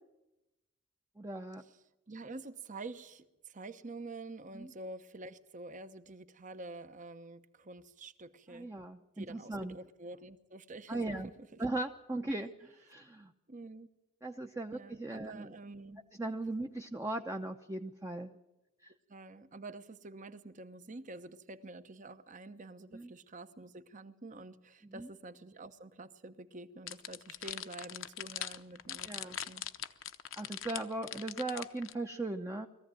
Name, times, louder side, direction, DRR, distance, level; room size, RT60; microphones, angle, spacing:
voice 1, 1.2-1.6 4.5-4.7 8.5-9.8 10.9-11.3 11.6-13.3 14.2-15.5 16.2-18.3 18.8-18.9 22.9-23.1 24.8-25.1 29.0-29.4 30.4-32.7, right 2 dB, 15° right, 4 dB, 0.8 m, -38 dB
voice 2, 2.1-8.7 9.2-11.6 13.5-13.9 14.7-16.0 19.1-29.6, right 2 dB, 40° right, 12 dB, 1.0 m, -48 dB
sound 1, 26.9-31.9, left 11 dB, 70° left, 0.9 m, -41 dB
21.0 x 15.0 x 9.0 m, 0.96 s
head